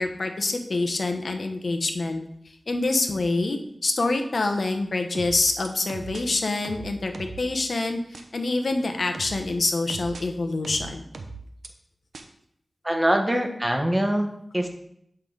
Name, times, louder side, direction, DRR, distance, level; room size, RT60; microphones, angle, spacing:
voice 1, 0.0-2.2 2.7-8.0 8.3-11.0, left 2 dB, 65° left, 5 dB, 1.0 m, -26 dB
sound 1, 5.1-6.2 6.6-7.4 8.1-8.2 9.1-10.2 10.6-11.7 12.1-12.2, right 4 dB, 90° right, 0.8 m, -38 dB
voice 2, 12.8-14.7, right 1 dB, 10° right, 3 dB, 1.1 m, -24 dB
8.1 x 5.5 x 3.9 m, 0.73 s
wide cardioid pair, 70°, 0 cm